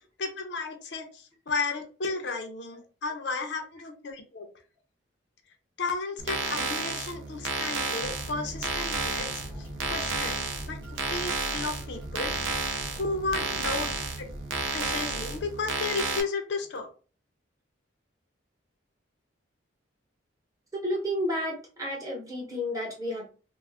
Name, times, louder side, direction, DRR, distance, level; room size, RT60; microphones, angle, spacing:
voice 1, 0.2-4.5 5.8-10.4 10.7-10.8 11.1-12.3 13.0-13.9 14.2-14.3 14.7-16.9, left 3 dB, 60° left, 4 dB, 0.5 m, -33 dB
sound 1, 6.2-16.2, right 4 dB, 80° right, 0.5 m, -32 dB
sound 2, 8.0-15.4, equal, 10° left, 0.7 m, -41 dB
voice 2, 20.7-23.3, equal, 15° right, -3 dB, 0.9 m, -31 dB
2.4 x 2.0 x 3.4 m, 0.35 s
head